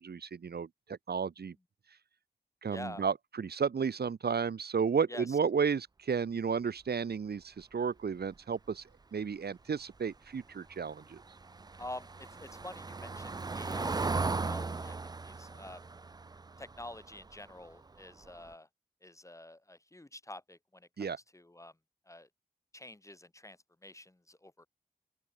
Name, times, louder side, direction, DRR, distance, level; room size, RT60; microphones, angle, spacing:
voice 1, 0.0-1.5 2.6-8.8 9.1-11.2 21.0-21.2, right 6 dB, 90° right, 0.8 m, -33 dB
voice 2, 2.7-3.0 5.1-5.4 11.8-15.0 15.2-15.9 16.6-18.7 19.0-21.7 22.1-22.3 22.7-24.7, left 1 dB, 20° left, 0.9 m, -48 dB
Car passing by / Engine, 10.7-17.7 18.0-18.3 18.5-18.6, right 3 dB, 25° right, 0.3 m, -37 dB
open air
wide cardioid pair, 70°, 16 cm